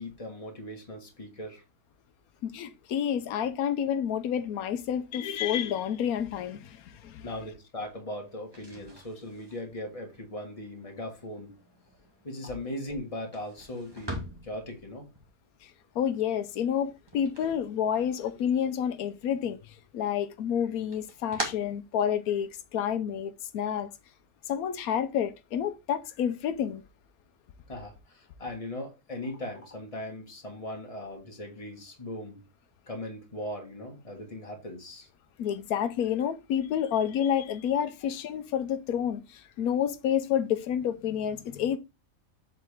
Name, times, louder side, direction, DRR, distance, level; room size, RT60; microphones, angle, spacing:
voice 1, 0.0-1.6 7.2-11.5 12.2-15.1 27.7-32.4 32.9-35.1, left 1 dB, 25° left, 1.7 m, -39 dB
voice 2, 2.4-7.3 15.6-19.6 19.9-23.9 24.5-26.8 35.4-41.8, left 9 dB, 90° left, 1.1 m, -29 dB
sound 1, 8.4-18.4 18.7-19.6 20.0-22.6, right 1 dB, 15° right, 1.6 m, -43 dB
7.5 x 4.1 x 3.5 m
omnidirectional pair, 1.5 m